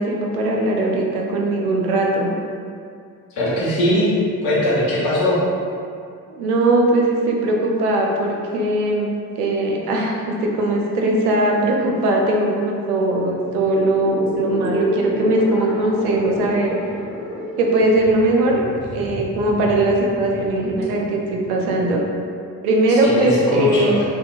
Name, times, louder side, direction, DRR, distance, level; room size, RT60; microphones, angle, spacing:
voice 1, 0.0-2.3 6.4-16.8 17.6-18.7 18.9-22.0 22.6-24.0, right 1 dB, 75° right, -1 dB, 0.5 m, -19 dB
voice 2, 3.3-4.1 4.4-5.4 22.9-24.0, left 1 dB, 70° left, -8 dB, 0.9 m, -20 dB
sound 1, 13.5-22.1, equal, 5° right, 0.5 m, -31 dB
2.6 x 2.3 x 2.4 m, 2.3 s
figure-of-eight pair, 40°, 46 cm